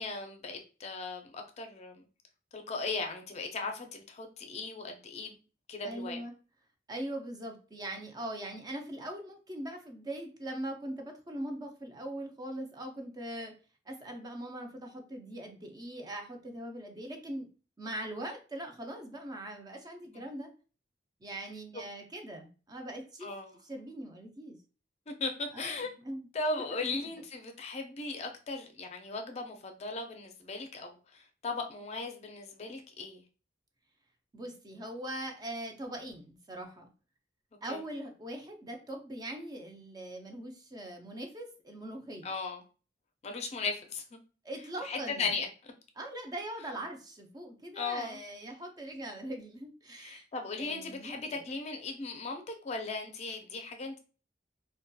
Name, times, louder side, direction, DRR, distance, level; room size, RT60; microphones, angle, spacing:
voice 1, 0.0-2.1 2.5-5.4 5.7-6.2 20.1-20.2 23.2-23.6 25.1-25.9 26.3-33.2 37.7-37.8 42.2-42.6 43.2-44.2 44.8-45.7 47.7-48.2 49.9-54.0, left 3 dB, 35° left, 5 dB, 0.4 m, -37 dB
voice 2, 5.8-6.3 6.9-13.5 13.9-17.5 17.8-20.5 21.2-23.3 23.6-24.6 25.5-25.7 26.0-26.3 34.3-36.9 37.6-42.3 44.4-45.3 46.0-50.3 50.6-51.4, right 1 dB, 20° right, 3 dB, 0.4 m, -41 dB
2.6 x 2.2 x 2.2 m, 0.36 s
head